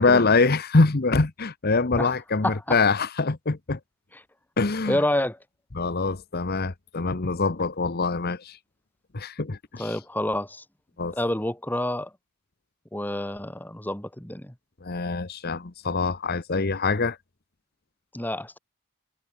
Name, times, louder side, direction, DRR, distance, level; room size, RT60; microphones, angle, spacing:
voice 1, 0.0-3.8 4.6-5.0 5.7-8.6 9.1-10.0 11.0-11.2 14.8-17.2, left 3 dB, 45° left, 1.0 m, -24 dB
voice 2, 4.8-5.4 9.8-10.6 11.1-12.1 12.9-14.5 18.1-18.6, left 1 dB, 10° left, 1.5 m, -28 dB
head